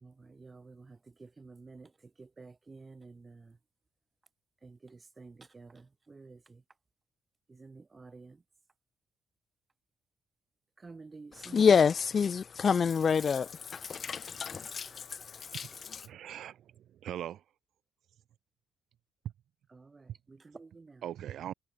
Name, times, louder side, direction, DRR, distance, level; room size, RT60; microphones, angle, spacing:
voice 1, 0.0-1.9 2.2-3.6 4.6-6.6 7.5-8.4 10.8-11.7 19.7-21.0, right 4 dB, 30° right, 2.0 m, -51 dB
voice 2, 11.4-16.0, left 6 dB, 45° left, 0.3 m, -28 dB
voice 3, 16.0-17.4 21.0-21.5, right 11 dB, 65° right, 1.9 m, -41 dB
hypercardioid pair, 55°, 0 cm